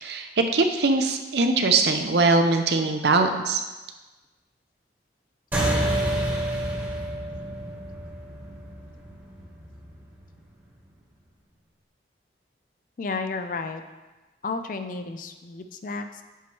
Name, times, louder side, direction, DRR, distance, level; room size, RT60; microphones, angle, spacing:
voice 1, 0.0-3.6, right 3 dB, 65° right, 6 dB, 0.6 m, -22 dB
sound 1, 5.5-10.3, right 1 dB, 10° right, 1.6 m, -28 dB
voice 2, 13.0-13.8 14.4-16.2, left 4 dB, 45° left, 8 dB, 0.4 m, -32 dB
9.2 x 3.1 x 4.5 m, 1.2 s
head